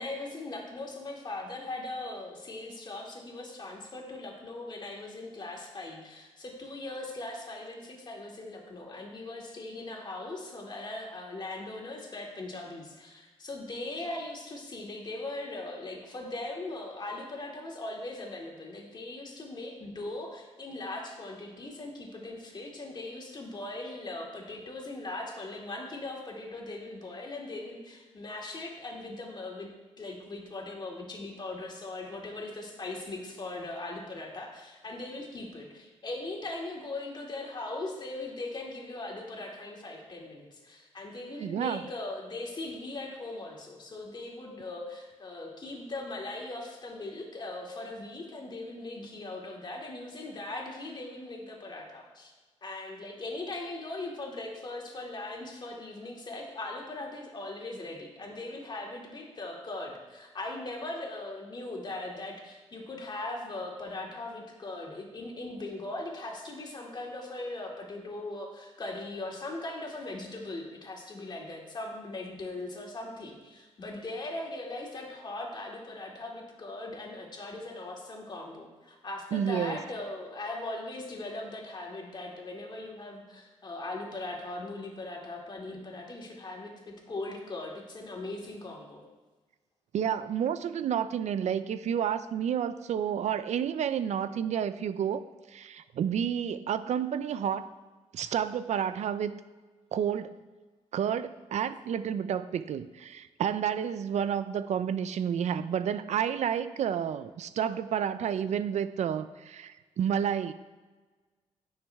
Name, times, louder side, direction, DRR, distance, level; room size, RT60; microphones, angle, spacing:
voice 1, 0.0-29.7 30.0-52.3 52.6-86.7 87.1-89.0, left 2 dB, 40° left, 0 dB, 2.4 m, -39 dB
voice 2, 41.4-41.8 79.3-79.8 89.9-95.2 95.5-97.7 98.1-99.4 99.9-100.4 100.9-110.5, right 8 dB, 70° right, 13 dB, 0.5 m, -30 dB
16.5 x 6.5 x 3.5 m, 1.3 s
cardioid pair, 110°, 12 cm